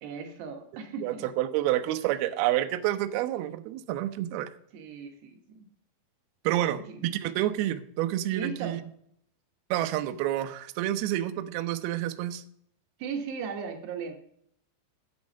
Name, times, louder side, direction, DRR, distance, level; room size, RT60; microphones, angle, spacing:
voice 1, 0.0-1.3 4.7-5.7 6.7-7.0 8.3-8.8 13.0-14.1, right 6 dB, 70° right, 4 dB, 3.1 m, -37 dB
voice 2, 1.0-4.5 6.4-8.8 9.7-12.4, right 13 dB, 90° right, 9 dB, 2.2 m, -29 dB
10.5 x 8.3 x 5.4 m, 0.68 s
omnidirectional pair, 5.4 m